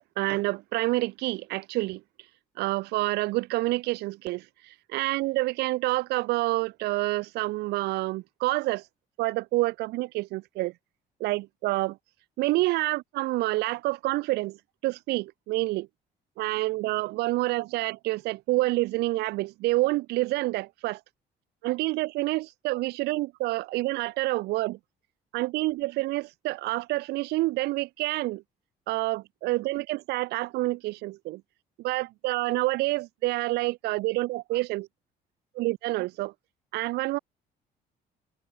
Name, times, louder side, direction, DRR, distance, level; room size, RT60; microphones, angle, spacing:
voice 1, 0.0-2.0 2.6-8.8 9.2-10.7 11.2-12.0 12.4-14.6 14.8-15.9 16.4-21.0 21.6-24.8 25.3-28.4 28.9-31.4 31.8-34.9 35.5-36.3 36.7-37.2, right 20 dB, 75° right, 0.4 m, -28 dB
cardioid pair, 110°, 17 cm